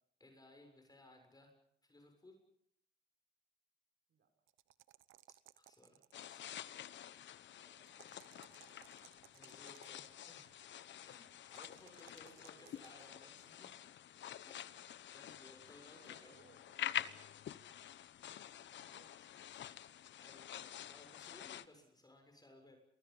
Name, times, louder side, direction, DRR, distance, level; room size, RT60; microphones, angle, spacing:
voice 1, 0.2-1.5 1.8-2.4 5.5-6.5 9.3-10.5 11.0-13.7 14.4-14.8 15.1-16.5 20.1-22.8, left 1 dB, 20° left, 3 dB, 7.0 m, -62 dB
sound 1, 4.5-6.4 7.8-10.1 11.5-13.1, right 15 dB, 90° right, 0.9 m, -63 dB
sound 2, 6.1-21.7, left 10 dB, 65° left, 1.1 m, -48 dB
voice 2, 7.6-8.9 11.4-13.3 13.6-13.7 15.8-17.0 18.7-19.1, right 6 dB, 65° right, 7 dB, 5.9 m, -70 dB
30.0 x 24.0 x 5.6 m, 0.74 s
cardioid pair, 90°, 20 cm